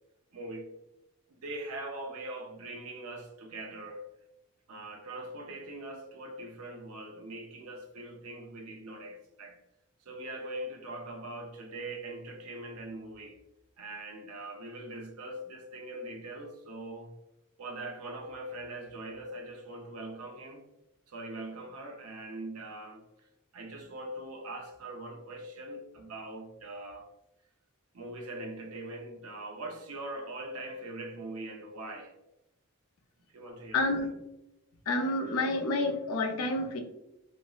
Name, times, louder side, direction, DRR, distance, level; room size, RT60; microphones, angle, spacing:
voice 1, 0.3-0.7 1.3-4.1 4.7-9.6 10.1-13.4 13.8-17.1 17.6-20.6 21.1-23.0 23.5-27.1 27.9-32.1 33.3-34.0, right 1 dB, 75° right, 0.5 m, -42 dB
voice 2, 33.7-34.1 34.9-36.8, left 2 dB, 75° left, 0.5 m, -29 dB
2.9 x 2.5 x 2.3 m
head